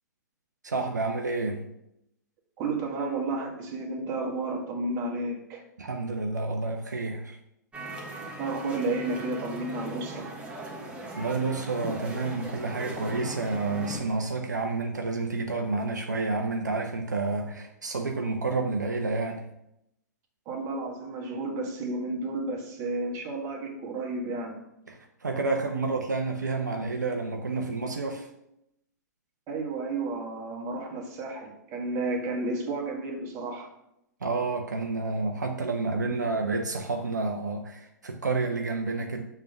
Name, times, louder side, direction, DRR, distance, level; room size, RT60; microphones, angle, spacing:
voice 1, 0.6-1.7 5.8-7.4 11.2-19.5 24.9-28.3 34.2-39.2, right 3 dB, 70° right, 3 dB, 0.7 m, -29 dB
voice 2, 2.6-5.6 8.4-10.3 20.4-24.6 29.5-33.7, right 2 dB, 30° right, 1 dB, 1.5 m, -32 dB
sound 1, 7.7-14.0, right 1 dB, 15° right, 1.2 m, -39 dB
6.9 x 3.5 x 5.8 m, 0.82 s
figure-of-eight pair, 110°, 10 cm